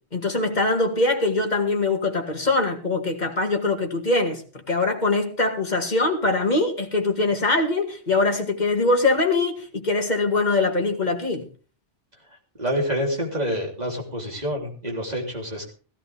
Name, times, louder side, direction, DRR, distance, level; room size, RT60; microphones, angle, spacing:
voice 1, 0.1-4.4 4.7-11.4, left 2 dB, 40° left, 2.3 m, -22 dB
voice 2, 12.6-15.7, equal, 40° right, 3.5 m, -27 dB
16.0 x 15.5 x 3.5 m
omnidirectional pair, 1.1 m